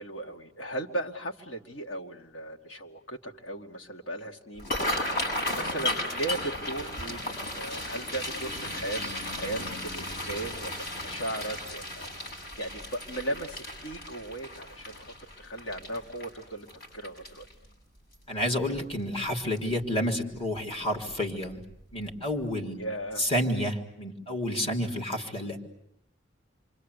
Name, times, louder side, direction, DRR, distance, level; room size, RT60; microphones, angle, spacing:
voice 1, 0.0-16.7 16.9-17.5 22.8-23.2, right 1 dB, 80° left, 3 dB, 2.5 m, -37 dB
sound 1, 4.5-17.7 18.1-18.4 18.7-19.2 19.6-19.7 20.9-21.1 21.5-21.6 22.1-22.2, left 1 dB, 55° left, 7.9 m, -35 dB
voice 2, 18.3-21.6 21.9-22.8 23.2-25.7, equal, 30° left, 2 dB, 3.5 m, -30 dB
28.0 x 25.0 x 8.4 m, 0.78 s
head